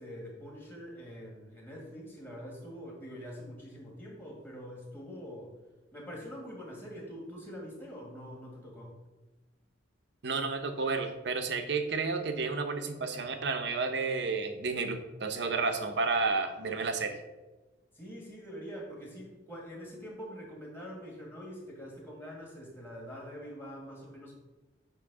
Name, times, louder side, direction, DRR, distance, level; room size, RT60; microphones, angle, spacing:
voice 1, 0.0-5.5 5.9-9.0 17.9-24.3, equal, 10° left, -3 dB, 1.8 m, -44 dB
voice 2, 10.2-17.2, right 4 dB, 60° right, 7 dB, 0.8 m, -31 dB
8.4 x 3.1 x 6.0 m, 1.2 s
head